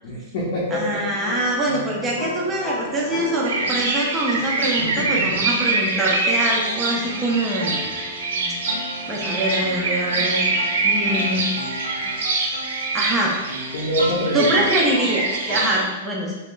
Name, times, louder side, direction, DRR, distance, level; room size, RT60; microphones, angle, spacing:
voice 1, 0.0-1.0 4.8-5.2 13.7-14.7, equal, 40° left, -6 dB, 0.6 m, -25 dB
voice 2, 0.7-7.8 9.1-10.4 10.8-11.5 12.9-13.3 14.3-16.3, right 1 dB, 10° right, -4 dB, 0.4 m, -24 dB
sound 1, 1.2-15.7, left 1 dB, 80° left, 0.8 m, -35 dB
sound 2, 3.4-15.8, right 3 dB, 75° right, 0.7 m, -24 dB
3.0 x 2.4 x 3.6 m, 1.2 s
supercardioid pair, 175°, 0 cm